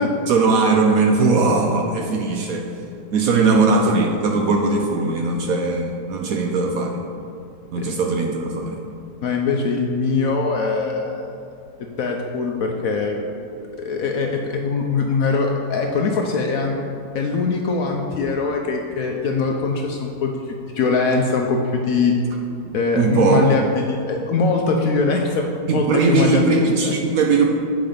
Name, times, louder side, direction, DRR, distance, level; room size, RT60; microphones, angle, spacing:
voice 1, 0.3-2.7 3.1-7.0 7.7-8.8 22.9-23.5 25.7-27.4, right 3 dB, 65° right, 1 dB, 1.0 m, -19 dB
voice 2, 9.2-11.3 11.8-13.3 13.8-16.7 17.1-20.3 20.7-22.1 22.7-26.9, left 4 dB, 65° left, 2 dB, 0.9 m, -22 dB
7.8 x 5.0 x 5.1 m, 2.6 s
omnidirectional pair, 1.9 m